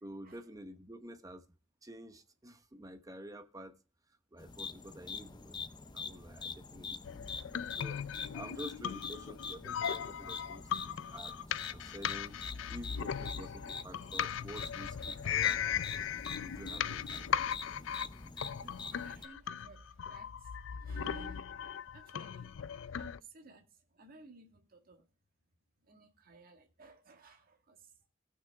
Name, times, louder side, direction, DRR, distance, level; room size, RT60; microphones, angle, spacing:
voice 1, 0.0-1.4 1.8-3.8 4.3-5.6 5.9-8.0 8.3-12.4 12.7-15.8 16.4-17.4, right 1 dB, 20° right, 0.9 m, -49 dB
sound 1, 4.4-19.3, left 4 dB, 25° left, 0.5 m, -45 dB
sound 2, 7.0-23.2, left 9 dB, 85° left, 0.4 m, -38 dB
voice 2, 7.2-7.8 8.5-8.6 8.9-9.0 13.0-13.1 18.6-25.1 25.9-27.9, right 3 dB, 50° right, 1.6 m, -57 dB
sound 3, 18.6-21.9, right 1 dB, 85° right, 1.1 m, -62 dB
17.5 x 5.9 x 3.4 m
head